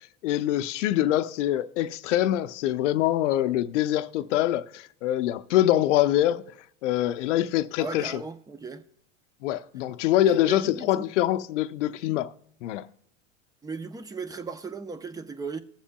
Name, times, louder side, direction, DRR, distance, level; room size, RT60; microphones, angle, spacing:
voice 1, 0.2-6.4 6.8-8.2 9.4-12.3 12.6-12.9, left 13 dB, 75° left, 0.6 m, -24 dB
voice 2, 7.8-8.8 10.2-11.1 13.6-15.6, right 4 dB, 10° right, 0.6 m, -36 dB
21.0 x 7.3 x 2.3 m
hypercardioid pair, 115°, 37 cm